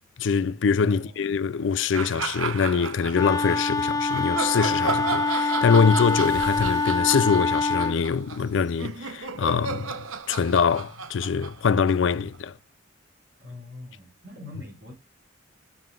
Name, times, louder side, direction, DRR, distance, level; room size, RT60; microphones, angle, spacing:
voice 1, 0.2-12.5, left 6 dB, 65° left, 0.4 m, -24 dB
sound 1, 1.9-3.6 4.1-12.4, right 5 dB, 85° right, 0.9 m, -34 dB
sound 2, 2.5-12.5, right 1 dB, 45° right, 2.8 m, -50 dB
Wind instrument woodwind instrument, 3.1-8.0, left 3 dB, 20° left, 0.6 m, -25 dB
voice 2, 13.4-14.9, left 2 dB, 60° right, 5.6 m, -43 dB
7.6 x 7.1 x 2.4 m
head